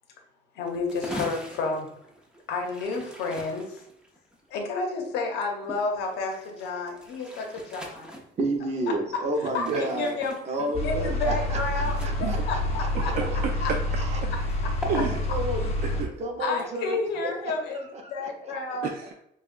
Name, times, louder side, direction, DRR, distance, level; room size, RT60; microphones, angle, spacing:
voice 1, 0.5-1.9 2.5-3.8 4.5-8.1 8.9-9.0 9.4-10.4 10.8-11.9 12.2-13.1 13.6-13.7 16.4-18.9, left 3 dB, 85° left, 2 dB, 0.8 m, -30 dB
sound 1, 0.7-12.2 12.5-14.6 14.8-15.2 15.5-16.1 16.3-16.6 17.1-17.5, equal, 5° right, 0.6 m, -42 dB
voice 2, 8.4-10.2 10.5-13.1 14.0-14.2 14.8-15.7 16.2-17.0 17.7-18.8, right 1 dB, 40° right, 2 dB, 0.8 m, -31 dB
voice 3, 9.4-9.8 10.6-10.7 12.2-12.4 12.9-13.8 14.2-14.3 14.9-15.2 15.8-16.2 18.8-19.1, right 6 dB, 60° right, 2 dB, 0.4 m, -31 dB
sound 2, 10.7-16.0, left 1 dB, 35° left, 0.7 m, -28 dB
4.9 x 2.3 x 2.5 m, 0.77 s
cardioid pair, 110°, 17 cm